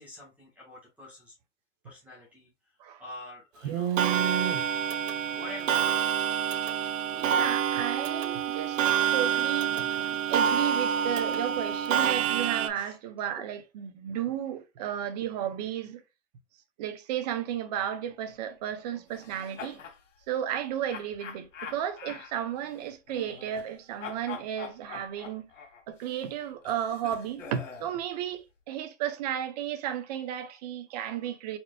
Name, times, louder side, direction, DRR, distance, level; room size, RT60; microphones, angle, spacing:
voice 1, 0.0-1.3 1.8-2.5 3.0-4.1 5.2-6.2 12.7-13.3, left 2 dB, 5° right, 1.4 m, -46 dB
voice 2, 3.6-4.6 7.1-16.0 16.8-19.8 20.3-25.5 25.9-31.6, right 10 dB, 35° right, 0.8 m, -33 dB
Clock, 4.0-12.7, right 8 dB, 85° right, 0.9 m, -27 dB
sound 1, 19.1-20.0 20.9-23.7 24.0-27.9, left 6 dB, 90° left, 2.0 m, -44 dB
4.8 x 4.4 x 2.3 m
supercardioid pair, 165°, 37 cm